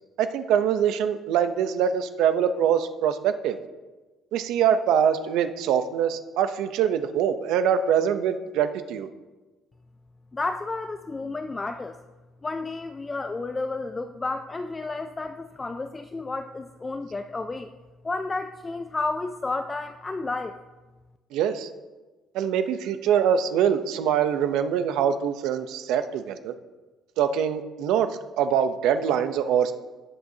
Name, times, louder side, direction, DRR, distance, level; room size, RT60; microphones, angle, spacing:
voice 1, 0.2-3.6 4.3-9.1 21.3-21.7 22.3-26.5 27.2-28.1 28.4-29.7, right 8 dB, 75° right, 10 dB, 0.7 m, -24 dB
voice 2, 10.3-12.0 12.4-17.7 18.0-20.6, left 3 dB, 15° left, 8 dB, 0.3 m, -31 dB
17.0 x 7.7 x 2.8 m, 1.2 s
cardioid pair, 170°, 0 cm